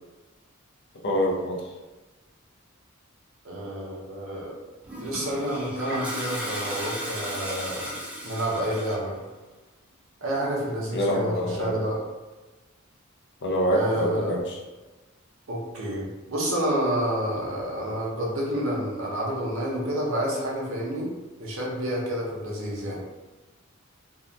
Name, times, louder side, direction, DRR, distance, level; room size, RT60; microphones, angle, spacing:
voice 1, 1.0-1.7 10.9-11.9 13.4-14.6, equal, 55° left, 0 dB, 0.5 m, -26 dB
voice 2, 3.4-4.5 5.0-7.9 8.2-9.2 10.2-12.0 13.7-14.3 15.5-21.1 21.4-23.0, right 1 dB, 70° right, -4 dB, 0.7 m, -29 dB
Toilet flush, 4.8-9.1, equal, 5° right, 0.4 m, -35 dB
2.7 x 2.3 x 2.3 m, 1.2 s
head